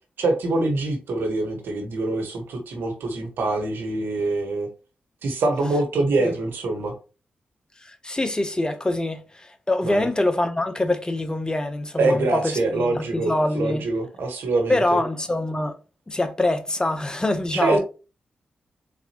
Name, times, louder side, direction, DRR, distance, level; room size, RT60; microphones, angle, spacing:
voice 1, 0.2-4.7 5.2-6.9 9.8-10.1 12.0-15.0 17.5-17.8, right 2 dB, 80° right, 1.3 m, -24 dB
voice 2, 7.8-13.8 14.7-15.7 16.1-17.8, left 1 dB, 20° left, 0.9 m, -24 dB
4.2 x 4.0 x 2.9 m
supercardioid pair, 50°, 4 cm